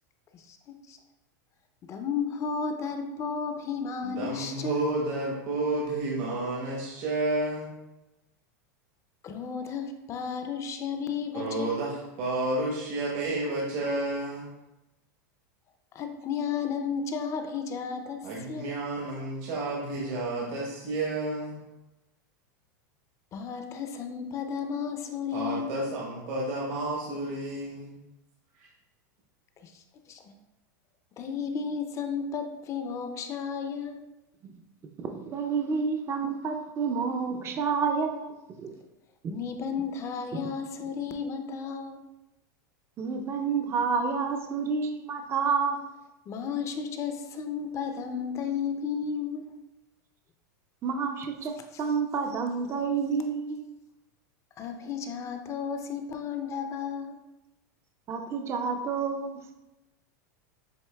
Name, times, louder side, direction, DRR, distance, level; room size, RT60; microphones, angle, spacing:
voice 1, 0.3-1.0 1.9-4.9 9.2-11.9 15.9-18.7 23.3-25.8 29.6-29.8 30.1-30.2 31.2-34.0 39.3-42.0 46.3-49.5 54.6-57.2, left 6 dB, 30° left, 6 dB, 0.5 m, -33 dB
voice 2, 4.0-7.7 11.3-14.5 18.2-21.6 25.3-28.0, right 2 dB, 60° right, -3 dB, 1.1 m, -31 dB
voice 3, 35.0-38.8 39.2-39.4 43.0-45.8 50.8-51.5 51.8-53.6 58.1-59.5, right 5 dB, 25° right, 4 dB, 0.4 m, -29 dB
7.7 x 2.8 x 2.2 m, 0.97 s
supercardioid pair, 120°, 10 cm